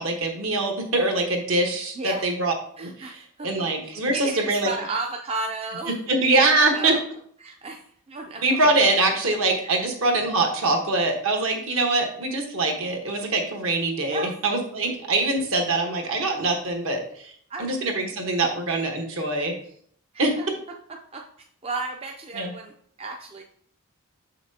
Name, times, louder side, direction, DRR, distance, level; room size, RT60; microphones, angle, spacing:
voice 1, 0.0-4.7 6.1-7.0 8.4-17.3 17.6-19.5 20.2-20.6 22.3-22.5, right 2 dB, 65° right, 3 dB, 1.1 m, -23 dB
voice 2, 2.0-2.3 2.8-3.5 3.8-5.9 6.4-7.0 7.4-8.6 9.6-9.7 14.1-14.3 17.5-17.7 20.1-20.5 21.1-21.2 21.6-22.7 23.0-23.4, right 3 dB, 25° right, 2 dB, 0.4 m, -33 dB
6.4 x 5.8 x 2.7 m, 0.62 s
head